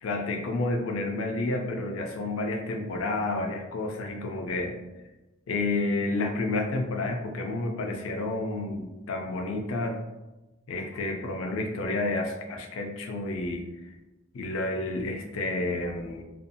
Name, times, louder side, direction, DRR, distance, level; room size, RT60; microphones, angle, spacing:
voice 1, 0.0-4.8 5.5-10.0 10.7-13.6 14.3-16.2, left 2 dB, 65° left, 3 dB, 0.4 m, -30 dB
2.6 x 2.3 x 2.5 m, 1.1 s
head